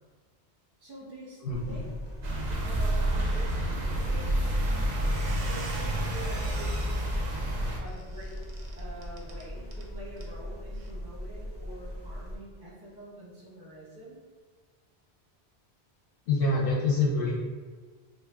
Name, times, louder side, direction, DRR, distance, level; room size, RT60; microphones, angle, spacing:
voice 1, 0.8-1.4 1.7-1.9 2.6-4.3 5.5-6.9 7.8-8.4 8.8-14.2, right 1 dB, 5° right, -6 dB, 0.6 m, -45 dB
voice 2, 1.4-1.8 16.3-17.3, left 3 dB, 65° left, -5 dB, 0.7 m, -26 dB
sound 1, 1.5-12.4, equal, 35° left, 0.4 m, -40 dB
sound 2, 2.2-7.8, right 1 dB, 55° right, 0.5 m, -29 dB
Squeak, 4.9-9.9 10.2-10.3 10.7-10.9, right 3 dB, 85° right, 0.8 m, -47 dB
2.6 x 2.2 x 3.4 m, 1.5 s
omnidirectional pair, 1.1 m